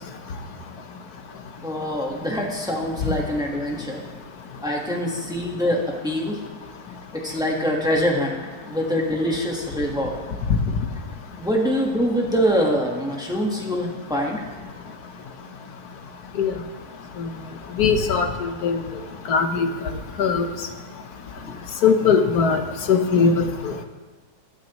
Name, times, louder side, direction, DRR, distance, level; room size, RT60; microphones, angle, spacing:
voice 1, 1.6-4.0 4.6-6.4 7.1-10.2 11.4-14.4, equal, 5° right, -1 dB, 1.3 m, -24 dB
voice 2, 17.8-18.8 19.3-19.7 20.2-20.5 21.8-22.6 22.9-23.7, left 5 dB, 70° left, 6 dB, 1.4 m, -20 dB
13.5 x 12.5 x 3.1 m, 1.3 s
omnidirectional pair, 1.7 m